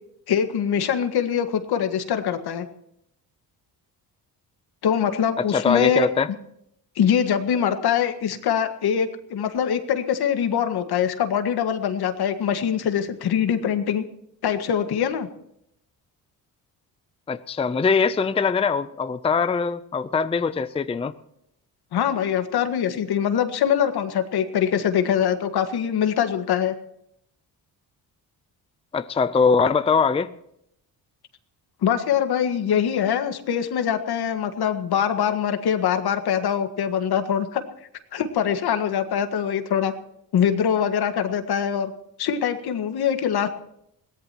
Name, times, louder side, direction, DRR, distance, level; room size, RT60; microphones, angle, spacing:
voice 1, 0.3-2.7 4.8-6.1 7.0-14.0 14.4-15.3 21.9-26.7 31.8-37.6 38.1-39.9 40.3-41.9 42.2-43.5, left 8 dB, 75° left, 8 dB, 1.7 m, -23 dB
voice 2, 5.5-6.3 17.3-21.1 28.9-30.3, left 5 dB, 15° left, 13 dB, 0.5 m, -22 dB
21.5 x 17.5 x 3.0 m, 0.76 s
cardioid pair, 130°, 39 cm